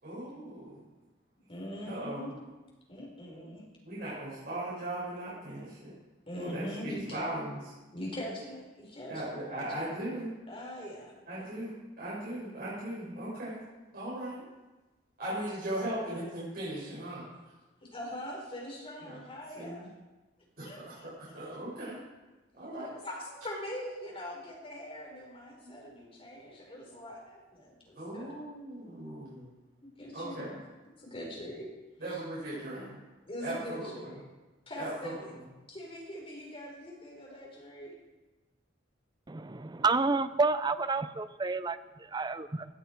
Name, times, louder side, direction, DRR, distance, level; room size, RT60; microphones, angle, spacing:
voice 1, 0.0-0.7 1.9-2.3 3.8-5.9 6.3-7.7 9.1-10.3 11.3-13.6 13.9-14.4 15.2-17.2 19.1-19.2 19.6-19.8 20.6-22.0 22.6-22.9 25.6-25.7 28.0-29.5 30.1-30.5 32.0-33.0 33.4-34.1 34.8-34.9, right 1 dB, 55° right, -8 dB, 6.2 m, -38 dB
voice 2, 1.5-2.3 2.9-3.6 6.3-7.2 7.9-9.9 10.5-11.1 15.9-16.2 17.4-19.9 20.6-21.4 22.8-28.4 30.0-30.6 31.0-31.7 32.0-32.2 33.3-34.3 34.7-35.4 35.7-38.0, equal, 30° left, -2 dB, 4.3 m, -42 dB
voice 3, 39.3-42.7, right 3 dB, 25° right, 12 dB, 0.6 m, -30 dB
17.0 x 13.0 x 4.6 m, 1.2 s
head